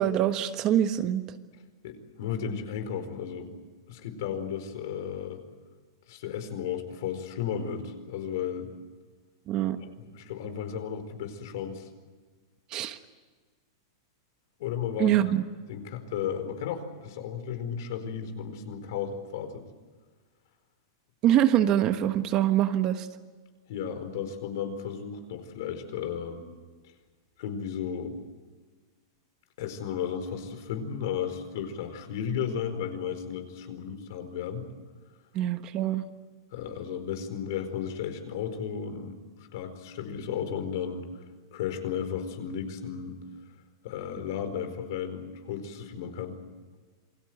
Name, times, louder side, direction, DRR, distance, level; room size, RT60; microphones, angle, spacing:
voice 1, 0.0-1.4 9.5-9.8 12.7-13.0 15.0-15.4 21.2-23.1 35.3-36.0, right 11 dB, 30° right, 9 dB, 1.3 m, -24 dB
voice 2, 1.8-3.6 3.9-5.4 6.1-8.7 10.0-11.9 14.6-15.1 15.7-19.6 23.7-26.4 27.4-28.2 29.6-34.7 36.5-41.1 41.5-43.2 43.8-46.4, left 8 dB, 60° left, 8 dB, 4.6 m, -34 dB
28.0 x 21.5 x 7.9 m, 1.4 s
supercardioid pair, 160°, 2 cm